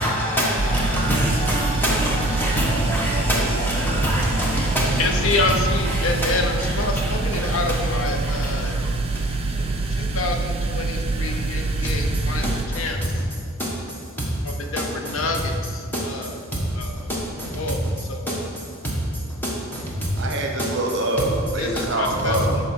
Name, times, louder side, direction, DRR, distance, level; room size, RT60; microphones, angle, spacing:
voice 1, 0.0-5.1, equal, 10° left, 1.2 m, -23 dB
sound 1, 0.6-12.6, right 3 dB, 25° right, 0.5 m, -25 dB
voice 2, 3.0-3.5 20.2-22.6, right 1 dB, 55° right, 0.9 m, -26 dB
voice 3, 5.0-8.8 9.9-12.5 12.7-13.2 14.4-16.4 16.8-17.1 17.6-18.3 21.6-22.5, left 3 dB, 65° left, 0.7 m, -28 dB
10.5 x 3.9 x 4.6 m
head